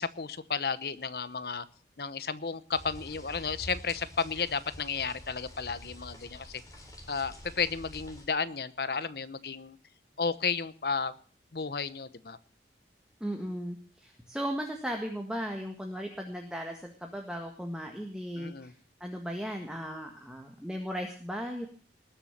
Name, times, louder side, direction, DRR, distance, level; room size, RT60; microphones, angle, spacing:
voice 1, 0.0-1.6 2.0-6.6 7.1-9.8 10.2-11.1 11.5-12.4 18.4-18.7, left 5 dB, 60° left, 15 dB, 0.9 m, -33 dB
sound 1, 2.7-8.3, left 1 dB, 20° left, 3.6 m, -47 dB
voice 2, 13.2-18.7 19.0-21.7, equal, 5° right, 2 dB, 1.7 m, -36 dB
20.0 x 7.2 x 7.3 m, 0.44 s
head